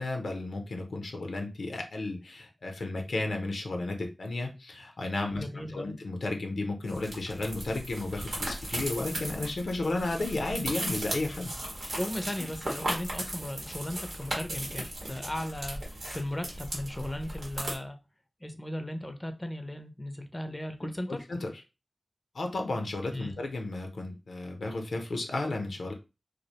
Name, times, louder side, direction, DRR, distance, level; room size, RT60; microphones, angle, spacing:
voice 1, 0.0-5.4 5.7-11.5 11.8-11.9 20.8-21.5 22.3-25.9, left 2 dB, 85° left, 3 dB, 0.5 m, -33 dB
voice 2, 5.4-5.9 11.9-15.8 16.1-18.0 18.4-21.3 23.1-23.5, left 1 dB, 25° left, 6 dB, 0.4 m, -36 dB
sound 1, 6.9-17.8, right 1 dB, 85° right, 0.9 m, -37 dB
2.4 x 2.0 x 2.7 m, 0.28 s
cardioid pair, 45°, 0 cm